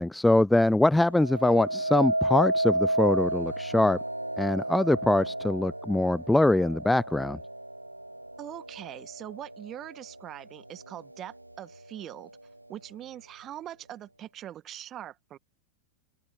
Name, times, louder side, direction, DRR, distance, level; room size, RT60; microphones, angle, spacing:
voice 1, 0.0-4.0 4.4-7.4, left 1 dB, 5° left, 0.4 m, -23 dB
sound 1, 1.1-10.2 10.7-11.2, right 1 dB, 85° right, 0.7 m, -32 dB
voice 2, 8.4-12.3 12.7-15.4, right 12 dB, 30° right, 1.7 m, -42 dB
open air
figure-of-eight pair, 90°, 0 cm